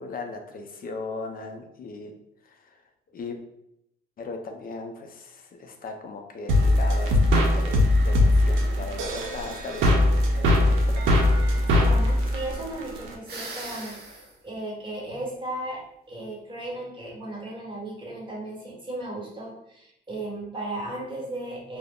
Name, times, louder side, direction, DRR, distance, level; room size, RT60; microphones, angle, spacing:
voice 1, 0.0-2.1 2.4-2.8 3.1-3.4 4.2-7.2 7.5-11.4, left 3 dB, 45° left, 4 dB, 0.4 m, -38 dB
sound 1, 6.5-13.1, left 1 dB, 90° right, 0.5 m, -21 dB
voice 2, 11.6-14.2 14.4-15.8 16.1-21.8, right 1 dB, 25° right, -4 dB, 1.2 m, -35 dB
sound 2, 13.3-14.4, right 2 dB, 55° right, 0.8 m, -38 dB
2.2 x 2.0 x 3.5 m, 0.78 s
cardioid pair, 90°, 20 cm